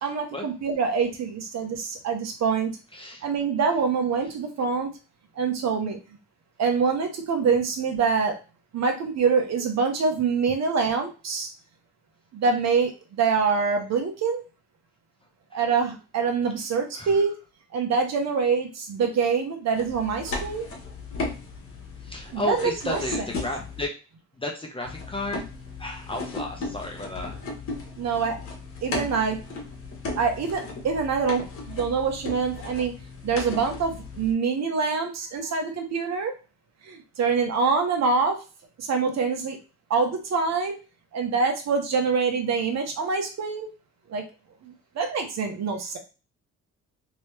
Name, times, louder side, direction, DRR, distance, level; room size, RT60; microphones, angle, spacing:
voice 1, 0.0-2.7 3.2-4.9 5.4-6.0 6.6-8.3 8.7-11.5 12.3-14.4 15.5-17.3 17.7-20.7 22.3-23.0 28.0-28.4 28.8-29.4 30.1-32.9 33.2-36.3 36.8-38.4 38.8-39.6 39.9-40.8 41.1-43.7 44.1-44.2 44.6-46.0, right 5 dB, 60° right, 4 dB, 1.0 m, -25 dB
voice 2, 2.9-3.2 16.9-17.2 22.0-23.9 24.4-25.4 25.8-27.4, left 2 dB, 20° left, 1 dB, 0.7 m, -33 dB
sound 1, 19.7-23.8 24.8-34.3, left 3 dB, 45° left, 1.2 m, -36 dB
3.0 x 2.9 x 3.2 m, 0.32 s
cardioid pair, 90°, 30 cm